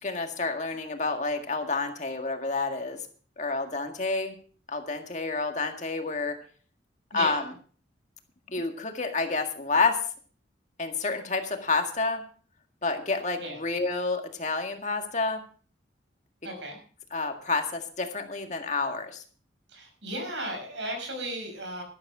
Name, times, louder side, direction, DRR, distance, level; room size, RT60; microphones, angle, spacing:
voice 1, 0.0-3.0 3.4-4.3 4.7-6.4 7.1-7.4 8.5-10.0 10.8-12.2 12.8-15.4 17.1-19.2, left 3 dB, 40° left, 5 dB, 1.8 m, -29 dB
voice 2, 16.4-16.8 19.7-21.8, right 1 dB, 85° right, 4 dB, 6.1 m, -35 dB
12.5 x 12.5 x 4.9 m, 0.43 s
head